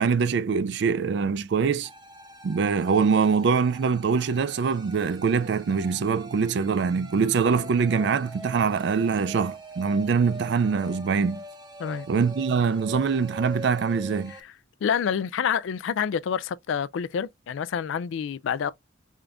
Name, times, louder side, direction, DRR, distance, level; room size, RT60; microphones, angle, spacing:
voice 1, 0.0-1.9 2.4-11.4 12.1-14.3, right 5 dB, 55° right, 0.3 m, -24 dB
sound 1, 1.8-14.4, right 1 dB, 20° right, 0.7 m, -42 dB
voice 2, 14.8-18.7, left 7 dB, 70° left, 0.3 m, -28 dB
3.7 x 3.4 x 2.4 m
head